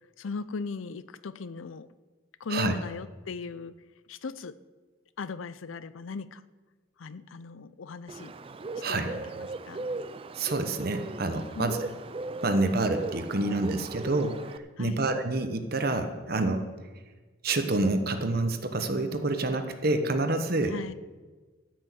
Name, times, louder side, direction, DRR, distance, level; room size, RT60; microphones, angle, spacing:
voice 1, 0.2-1.9 2.4-3.7 4.1-4.6 5.2-6.4 7.0-8.3 8.9-9.8 11.5-11.8 14.8-15.1 20.7-20.9, left 4 dB, 85° left, 15 dB, 0.5 m, -38 dB
Bird, 8.1-14.6, right 3 dB, 30° right, 0.4 m, -38 dB
voice 2, 10.4-11.8 12.4-14.4 14.8-16.6 17.4-20.7, right 2 dB, 50° right, 7 dB, 1.0 m, -27 dB
13.5 x 6.2 x 7.8 m, 1.3 s
head